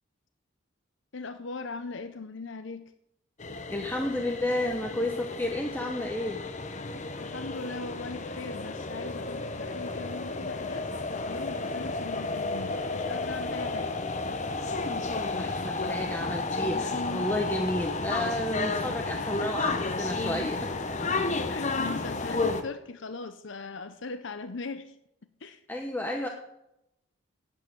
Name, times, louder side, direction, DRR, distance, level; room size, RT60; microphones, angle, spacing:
voice 1, 1.1-2.8 7.2-13.9 21.1-25.0 25.4-25.6, left 3 dB, 65° left, 10 dB, 0.7 m, -39 dB
sound 1, 3.4-22.6, left 3 dB, 35° left, 1.0 m, -32 dB
voice 2, 3.7-6.4 15.4-20.7 22.2-22.4 25.7-26.3, left 1 dB, 10° left, 1 dB, 1.0 m, -31 dB
8.7 x 8.6 x 8.8 m, 0.83 s
head